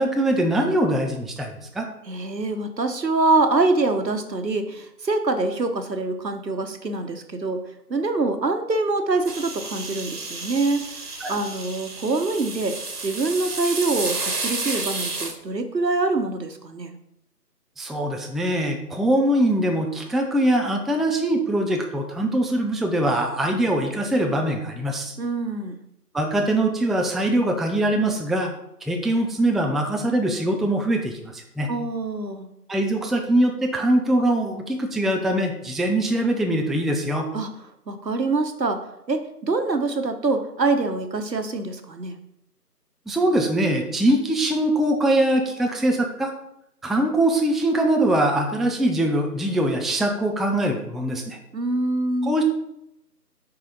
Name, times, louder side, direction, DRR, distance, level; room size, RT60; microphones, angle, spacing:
voice 1, 0.0-1.9 11.2-11.3 17.8-25.2 26.1-28.5 28.8-31.7 32.7-37.3 43.1-46.3 46.8-51.4 52.2-52.4, right 1 dB, ahead, 2 dB, 0.4 m, -22 dB
voice 2, 2.1-7.6 7.9-17.0 25.2-25.8 31.7-32.5 37.3-37.5 37.9-42.2 51.5-52.3, right 3 dB, 85° right, 7 dB, 1.1 m, -25 dB
sound 1, 9.2-15.3, right 3 dB, 70° right, 1.3 m, -31 dB
5.8 x 4.9 x 4.0 m, 0.80 s
figure-of-eight pair, 165°, 49 cm